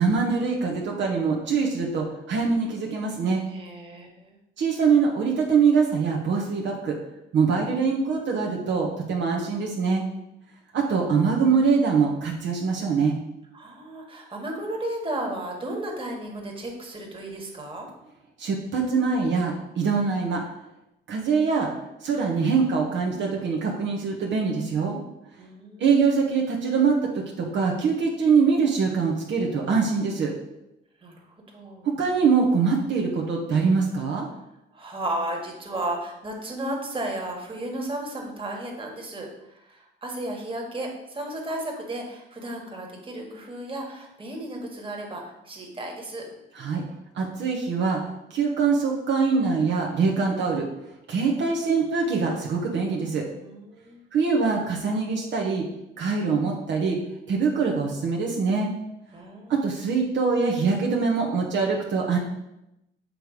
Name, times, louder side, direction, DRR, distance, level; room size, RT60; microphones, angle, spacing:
voice 1, 0.0-3.4 4.6-7.0 7.3-10.0 10.7-13.2 18.4-20.4 21.1-21.7 22.0-25.0 25.8-30.3 31.8-34.3 46.6-46.8 47.1-48.0 48.3-50.7 51.1-53.3 54.1-55.7 56.0-57.0 57.3-58.7 59.5-62.2, right 5 dB, 65° right, -1 dB, 1.2 m, -23 dB
voice 2, 3.5-4.4 13.5-17.9 25.4-25.8 31.0-31.2 31.5-31.9 34.7-39.3 39.6-46.3 53.2-54.0 59.1-59.7, right 1 dB, 25° right, 0 dB, 1.7 m, -34 dB
7.7 x 3.3 x 5.2 m, 0.87 s
cardioid pair, 90°, 20 cm